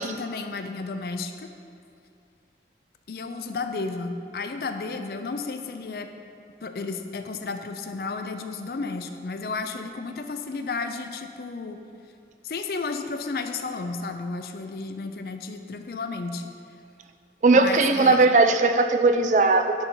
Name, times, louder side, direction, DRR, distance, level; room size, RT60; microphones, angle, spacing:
voice 1, 0.0-1.5 3.1-6.1 6.6-11.8 12.4-16.5 17.5-18.2, left 4 dB, 55° left, 7 dB, 0.4 m, -32 dB
voice 2, 17.4-19.8, right 3 dB, 45° right, 8 dB, 0.4 m, -18 dB
10.5 x 4.0 x 4.5 m, 2.5 s
head